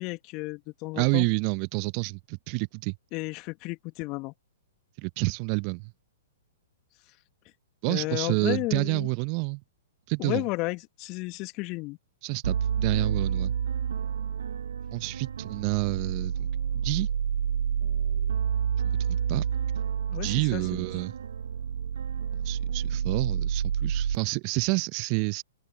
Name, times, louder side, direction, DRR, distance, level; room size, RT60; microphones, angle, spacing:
voice 1, 0.0-1.3 3.1-4.3 7.9-9.1 10.2-12.0 20.1-21.0, left 24 dB, 35° left, 2.2 m, -33 dB
voice 2, 0.9-3.0 5.0-5.9 7.8-9.6 10.1-10.4 12.2-13.5 14.9-16.5 16.7-17.1 19.3-19.4 20.1-21.1 22.4-25.4, right 34 dB, 40° right, 0.9 m, -28 dB
sound 1, 12.4-24.2, right 8 dB, 65° right, 1.5 m, -29 dB
figure-of-eight pair, 110°, 0 cm